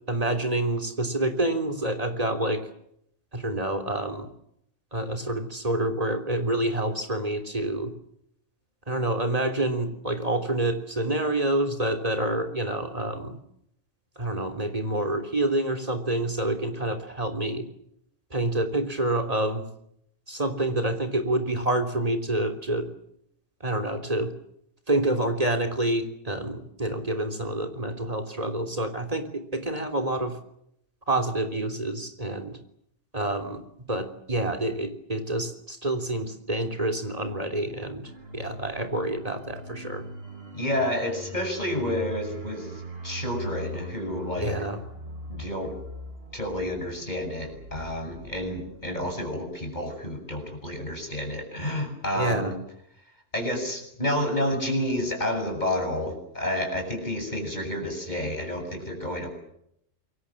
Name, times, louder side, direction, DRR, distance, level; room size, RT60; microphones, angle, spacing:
voice 1, 0.1-2.6 3.3-4.3 4.9-7.9 8.9-13.4 14.2-17.7 18.3-19.7 20.3-22.9 23.6-24.3 24.9-30.4 31.1-32.6 33.1-33.6 33.9-40.1 44.4-44.8 52.1-52.5, right 1 dB, 30° right, 6 dB, 3.5 m, -27 dB
sound 1, 38.0-50.4 50.7-50.9, right 1 dB, 50° right, 3.1 m, -41 dB
voice 2, 40.5-44.6 45.3-45.8 46.3-52.6 53.3-59.3, left 1 dB, 35° left, 4 dB, 8.0 m, -30 dB
27.5 x 23.0 x 7.5 m, 0.74 s
omnidirectional pair, 1.3 m